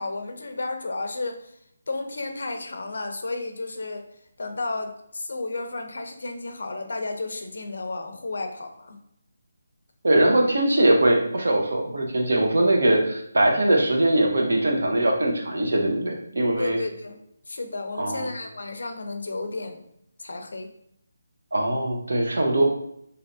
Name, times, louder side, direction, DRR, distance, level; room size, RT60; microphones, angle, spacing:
voice 1, 0.0-1.6 1.9-4.0 4.4-9.0 16.6-17.2 17.5-19.8 20.2-20.7, left 2 dB, 55° left, 5 dB, 0.5 m, -32 dB
voice 2, 10.0-16.8 18.0-18.3 21.5-22.6, right 1 dB, 65° right, 1 dB, 0.7 m, -21 dB
3.3 x 2.8 x 2.6 m, 0.73 s
hypercardioid pair, 180°, 0 cm